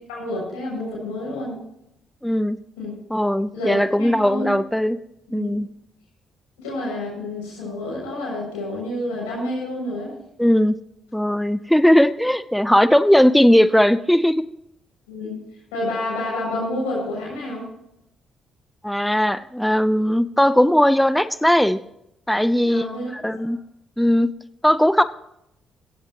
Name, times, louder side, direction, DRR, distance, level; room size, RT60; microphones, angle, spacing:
voice 1, 0.1-1.6 2.8-2.9 3.5-4.5 5.3-5.5 6.6-10.1 15.1-15.4 15.7-17.7 22.7-23.1 23.4-23.5, left 1 dB, 80° left, -4 dB, 7.0 m, -29 dB
voice 2, 2.2-2.6 3.1-5.0 5.3-5.7 10.4-10.8 11.1-14.4 18.8-21.8 22.3-22.8 23.1-23.6 24.0-24.3 24.6-25.0, equal, 5° left, 14 dB, 0.8 m, -18 dB
16.0 x 16.0 x 3.0 m, 0.81 s
hypercardioid pair, 45°, 0 cm